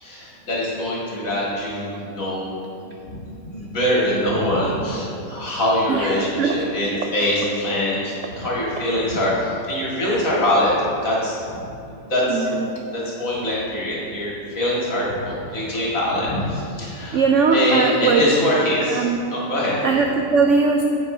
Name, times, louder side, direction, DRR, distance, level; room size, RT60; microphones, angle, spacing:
voice 1, 0.0-10.8 11.0-11.4 11.9-12.5 12.9-19.7, left 1 dB, 50° left, -6 dB, 2.4 m, -23 dB
voice 2, 5.9-6.6 12.3-12.7 17.1-18.2 18.9-19.2 19.8-20.8, right 4 dB, 75° right, 2 dB, 0.6 m, -19 dB
9.2 x 7.6 x 3.2 m, 2.7 s
omnidirectional pair, 1.8 m